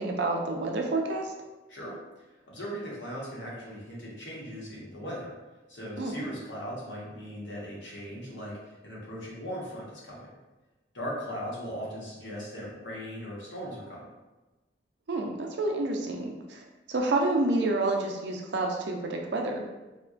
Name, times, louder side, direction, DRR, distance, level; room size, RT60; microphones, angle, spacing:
voice 1, 0.0-1.3 6.0-6.2 15.1-19.6, right 2 dB, 70° right, 1 dB, 0.5 m, -29 dB
voice 2, 2.4-5.3 5.7-10.3 10.9-14.1, equal, 80° left, -5 dB, 1.0 m, -38 dB
4.1 x 2.2 x 2.4 m, 1.1 s
head